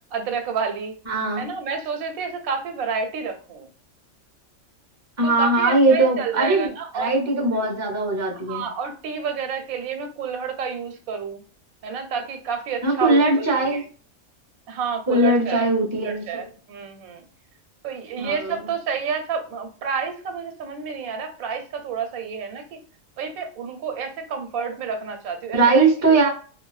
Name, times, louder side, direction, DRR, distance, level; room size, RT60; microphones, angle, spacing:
voice 1, 0.1-1.0 1.4-3.7 5.2-7.1 8.5-11.4 11.8-13.8 14.7-15.7 15.9-17.2 17.8-22.8 23.2-26.2, right 6 dB, 90° right, 6 dB, 1.1 m, -29 dB
voice 2, 1.1-1.5 5.2-6.7 6.9-8.6 12.8-13.8 15.1-16.4 18.2-18.5 25.5-26.3, right 2 dB, 15° right, 0 dB, 0.7 m, -20 dB
3.1 x 2.6 x 2.3 m, 0.39 s
omnidirectional pair, 1.4 m